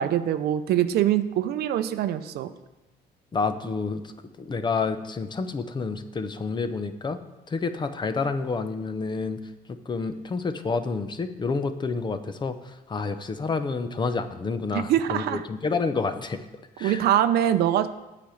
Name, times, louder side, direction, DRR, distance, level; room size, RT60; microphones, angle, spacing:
voice 1, 0.0-2.5 14.9-15.4 16.8-17.9, right 11 dB, 70° right, 11 dB, 0.6 m, -23 dB
voice 2, 3.3-4.1 4.4-7.2 7.5-9.4 9.9-16.4 16.8-17.0, left 4 dB, 25° left, 10 dB, 0.7 m, -29 dB
8.6 x 5.0 x 7.7 m, 1.0 s
cardioid pair, 110°, 17 cm